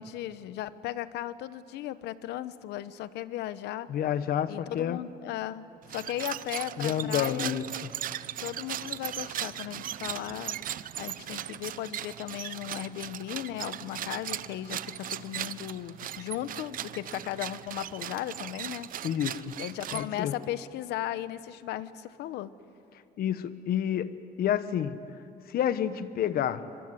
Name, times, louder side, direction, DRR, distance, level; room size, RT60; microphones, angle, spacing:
voice 1, 0.0-3.9 4.5-7.6 8.4-10.6 11.0-18.9 19.6-22.5, left 13 dB, 85° left, 14 dB, 1.0 m, -36 dB
voice 2, 3.9-5.0 6.8-7.7 19.0-19.5 19.9-20.3 23.2-25.0 25.5-26.6, left 10 dB, 60° left, 13 dB, 1.3 m, -29 dB
sound 1, 5.8-20.4, right 11 dB, 55° right, 0.8 m, -38 dB
24.5 x 23.5 x 9.8 m, 2.8 s
cardioid pair, 110°, 17 cm